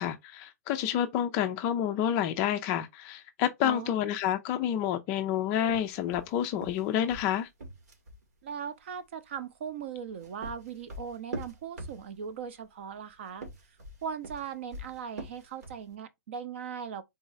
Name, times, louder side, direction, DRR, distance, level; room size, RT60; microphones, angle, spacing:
voice 1, 0.0-7.5, left 10 dB, 20° left, 0.3 m, -29 dB
voice 2, 3.6-4.0 8.4-13.5 14.0-17.0, right 7 dB, 45° right, 0.6 m, -39 dB
sound 1, 5.6-8.2 9.9-12.4 13.3-15.9, right 2 dB, 80° right, 1.9 m, -42 dB
3.9 x 2.4 x 4.0 m
hypercardioid pair, 170°, 9 cm